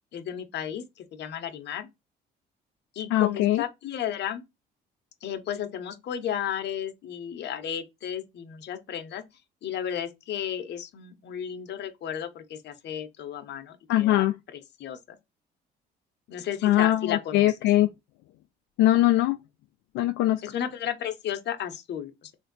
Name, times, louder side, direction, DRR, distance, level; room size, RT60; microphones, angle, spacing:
voice 1, 0.1-1.9 2.9-4.4 5.2-9.2 9.6-14.3 14.5-15.2 16.3-17.6 20.4-22.3, left 9 dB, 60° left, 0.8 m, -33 dB
voice 2, 3.1-3.6 13.9-14.3 16.6-17.9 18.8-19.4 19.9-20.4, left 15 dB, 80° left, 0.4 m, -21 dB
3.3 x 2.6 x 3.9 m
supercardioid pair, 80°, 20 cm